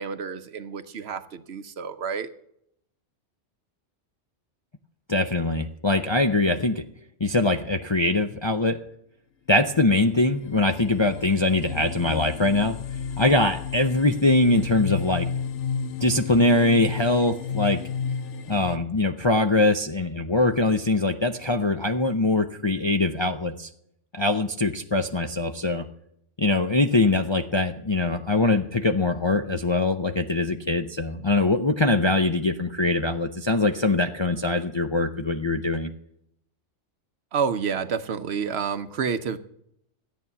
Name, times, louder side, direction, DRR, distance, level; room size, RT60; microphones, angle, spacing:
voice 1, 0.0-2.3 37.3-39.4, right 6 dB, 60° right, 11 dB, 1.0 m, -29 dB
voice 2, 5.1-6.8 7.2-8.8 9.5-12.8 13.2-15.3 16.0-17.8 18.5-23.7 24.1-25.8 26.4-35.9, left 2 dB, 30° left, 6 dB, 0.5 m, -22 dB
sound 1, 10.3-18.8, left 6 dB, 70° left, 1.0 m, -32 dB
13.5 x 9.2 x 6.9 m, 0.73 s
omnidirectional pair, 1.3 m